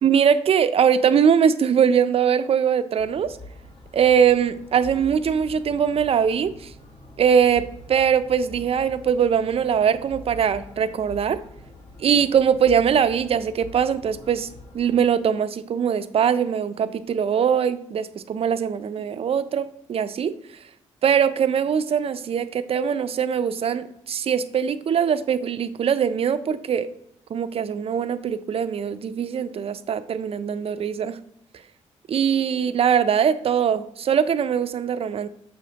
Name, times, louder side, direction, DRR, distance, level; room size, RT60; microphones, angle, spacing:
voice 1, 0.0-3.4 3.9-6.7 7.2-11.4 12.0-14.5 14.7-20.3 21.0-26.9 27.3-31.2 32.1-35.3, right 7 dB, 50° right, 12 dB, 0.4 m, -21 dB
sound 1, 3.0-15.0, left 2 dB, 40° left, 1.1 m, -44 dB
6.9 x 5.1 x 2.8 m, 0.78 s
cardioid pair, 75°, 13 cm